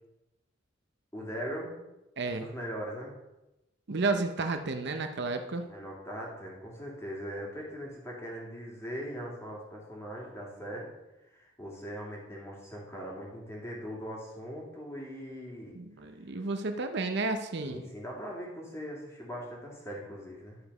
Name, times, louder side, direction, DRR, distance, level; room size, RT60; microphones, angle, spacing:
voice 1, 1.1-1.7 2.3-3.2 5.6-10.9 11.3-15.7 17.6-20.6, equal, 15° left, -3 dB, 2.5 m, -40 dB
voice 2, 2.2-2.5 3.9-5.6 15.7-17.8, right 3 dB, 60° right, 6 dB, 0.7 m, -32 dB
11.5 x 5.0 x 5.4 m, 0.97 s
head